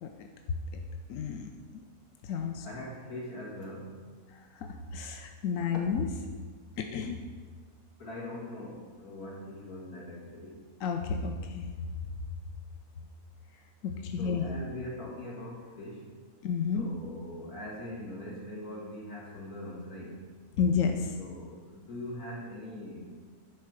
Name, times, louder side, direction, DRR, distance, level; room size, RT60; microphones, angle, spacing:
voice 1, 0.5-0.8 1.1-1.5 2.2-2.7 4.3-6.1 6.8-7.2 10.8-11.7 13.8-14.5 16.4-16.9 20.6-21.2, left 6 dB, 70° left, 4 dB, 1.0 m, -31 dB
voice 2, 2.6-4.0 5.7-5.9 8.0-10.6 14.2-16.1 16.7-20.2 21.2-23.1, left 1 dB, 85° left, -4 dB, 2.7 m, -42 dB
10.5 x 4.5 x 6.3 m, 1.5 s
omnidirectional pair, 1.6 m